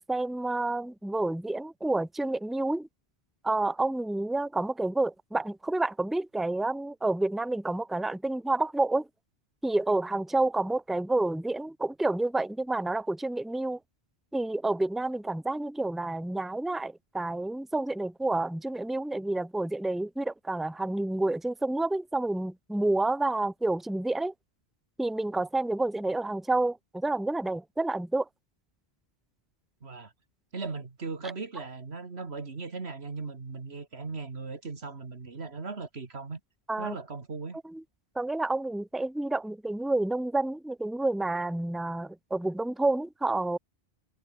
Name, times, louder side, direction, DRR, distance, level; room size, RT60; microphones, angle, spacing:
voice 1, 0.0-2.9 3.4-9.1 9.6-13.8 14.3-24.3 25.0-28.2 36.7-37.0 37.7-37.8 38.1-43.6, right 2 dB, ahead, 1.3 m, -29 dB
voice 2, 29.8-30.1 30.5-36.4 36.8-37.6, right 4 dB, 80° right, 2.4 m, -38 dB
omnidirectional pair, 1.1 m